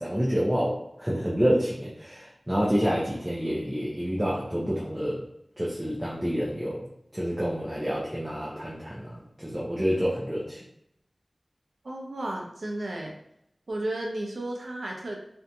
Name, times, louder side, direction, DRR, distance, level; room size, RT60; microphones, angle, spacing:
voice 1, 0.0-5.3 5.6-6.9 7.1-10.6, equal, 15° right, -6 dB, 0.6 m, -28 dB
voice 2, 11.8-13.1 13.7-15.2, right 1 dB, 80° right, 0 dB, 0.6 m, -33 dB
2.7 x 2.6 x 2.2 m, 0.77 s
wide cardioid pair, 55°, 0 cm